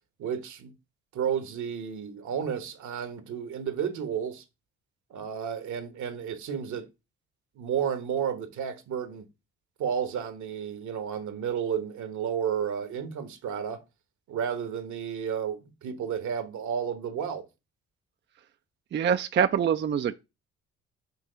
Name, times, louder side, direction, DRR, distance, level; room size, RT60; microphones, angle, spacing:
voice 1, 0.2-0.7 1.1-4.4 5.1-6.9 7.5-9.3 9.8-13.8 14.3-17.5, right 8 dB, 70° right, 1.2 m, -32 dB
voice 2, 18.9-20.1, right 8 dB, 35° right, 0.4 m, -24 dB
6.2 x 3.0 x 5.6 m
supercardioid pair, 60°, 31 cm